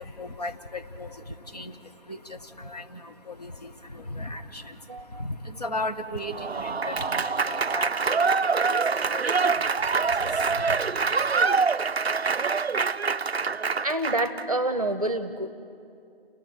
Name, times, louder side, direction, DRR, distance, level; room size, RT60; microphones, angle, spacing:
voice 1, 0.0-11.4, left 1 dB, 40° left, 5 dB, 1.2 m, -37 dB
voice 2, 4.9-5.2 13.8-15.5, right 1 dB, 35° right, 11 dB, 0.8 m, -27 dB
Applause / Crowd, 6.3-14.4, right 5 dB, 90° right, 0.5 m, -25 dB
29.5 x 17.5 x 5.2 m, 2.5 s
figure-of-eight pair, 160°, 31 cm